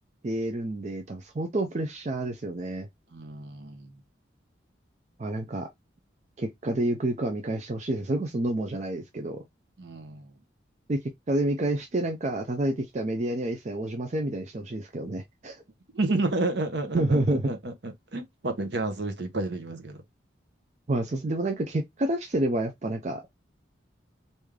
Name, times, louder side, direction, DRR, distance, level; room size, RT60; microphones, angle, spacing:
voice 1, 0.2-2.9 5.2-5.7 6.4-9.4 10.9-11.0 11.3-15.6 16.9-17.5 20.9-23.3, right 1 dB, 35° right, 0.4 m, -29 dB
voice 2, 3.1-4.0 9.8-10.3 15.9-20.0, right 2 dB, 60° right, 0.8 m, -31 dB
3.2 x 2.6 x 3.6 m
head